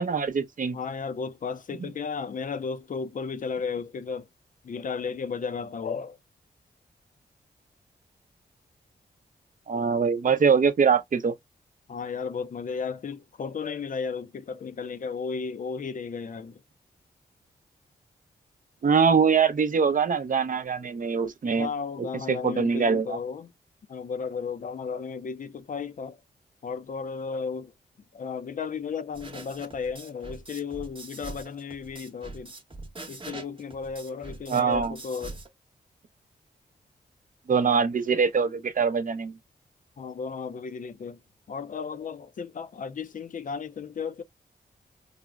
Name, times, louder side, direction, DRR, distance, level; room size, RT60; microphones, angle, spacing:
voice 1, 0.0-0.8 9.7-11.3 18.8-21.7 22.3-23.2 34.5-35.0 37.5-39.3, right 6 dB, 50° right, 0.6 m, -23 dB
voice 2, 0.7-4.3 4.6-6.2 11.9-16.6 21.6-23.5 23.9-26.2 26.6-27.7 28.1-32.5 33.1-35.4 40.0-41.2 41.5-44.2, left 5 dB, 50° left, 0.4 m, -34 dB
sound 1, 29.1-35.5, right 2 dB, 30° right, 0.9 m, -42 dB
4.8 x 2.0 x 2.3 m
cardioid pair, 50°, 18 cm